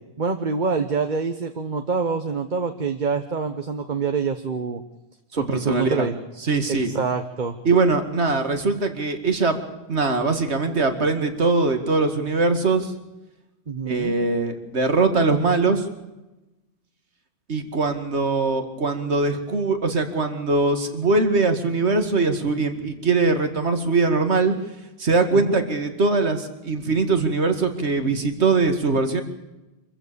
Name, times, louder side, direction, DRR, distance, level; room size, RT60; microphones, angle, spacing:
voice 1, 0.2-4.8 5.3-6.1 6.7-7.6 13.7-14.1 25.3-25.6, right 5 dB, 45° right, 7 dB, 1.2 m, -26 dB
voice 2, 5.3-6.1 6.4-6.9 7.6-9.6 9.9-12.9 13.9-15.8 17.5-24.5 25.0-29.2, right 3 dB, 90° right, 8 dB, 2.4 m, -21 dB
26.0 x 15.0 x 6.9 m, 1.0 s
omnidirectional pair, 1.1 m